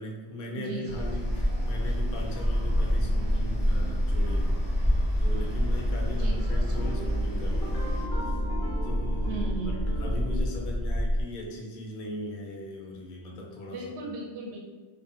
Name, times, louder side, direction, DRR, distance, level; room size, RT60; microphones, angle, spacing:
voice 1, 0.0-8.5 8.8-9.3 10.0-13.9, left 1 dB, 60° left, -1 dB, 0.6 m, -39 dB
voice 2, 0.5-1.0 6.2-6.8 9.3-9.9 13.7-14.6, right 4 dB, 70° right, -1 dB, 0.8 m, -37 dB
sound 1, 0.9-8.1, equal, 10° left, 0.5 m, -30 dB
sound 2, 2.6-11.2, equal, 35° right, 0.6 m, -28 dB
sound 3, 2.7-5.1 6.6-10.4, right 2 dB, 85° left, 0.9 m, -41 dB
2.5 x 2.3 x 2.4 m, 1.3 s
omnidirectional pair, 1.2 m